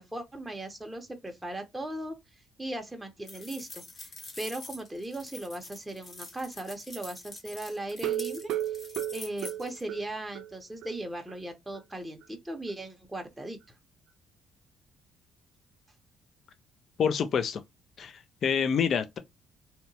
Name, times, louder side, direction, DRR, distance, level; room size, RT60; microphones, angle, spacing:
voice 1, 0.0-2.2 2.6-8.8 9.1-13.6, right 1 dB, 10° right, 0.6 m, -38 dB
sound 1, 3.3-9.8, left 3 dB, 40° left, 0.8 m, -46 dB
sound 2, 7.9-10.5 10.8-10.9 11.3-11.4 11.8-11.9, right 13 dB, 80° right, 0.4 m, -33 dB
voice 2, 17.0-17.6 18.0-19.2, left 7 dB, 55° left, 0.4 m, -27 dB
2.8 x 2.0 x 2.7 m
cardioid pair, 80°, 0 cm